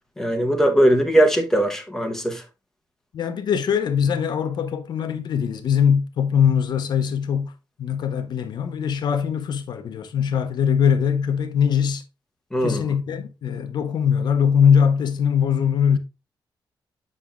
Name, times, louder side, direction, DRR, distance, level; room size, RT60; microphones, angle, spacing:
voice 1, 0.2-2.4 12.5-12.8, right 1 dB, 5° left, 1.0 m, -19 dB
voice 2, 3.1-7.5 7.8-12.0 12.6-16.0, left 7 dB, 65° left, 0.6 m, -21 dB
7.3 x 5.8 x 2.4 m
wide cardioid pair, 170°, 8 cm